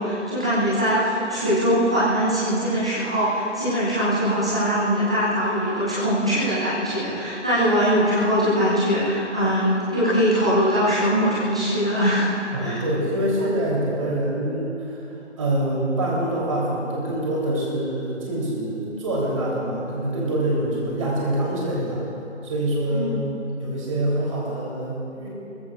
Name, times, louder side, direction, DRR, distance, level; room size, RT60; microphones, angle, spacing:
voice 1, 0.0-12.3 12.6-12.8 20.9-21.0 22.9-23.1, equal, 5° right, -12 dB, 0.8 m, -22 dB
voice 2, 12.5-15.0 15.4-22.0 22.4-23.3 23.6-25.3, right 1 dB, 25° right, -5 dB, 3.8 m, -25 dB
22.0 x 19.0 x 2.6 m, 3.0 s
figure-of-eight pair, 160°, 37 cm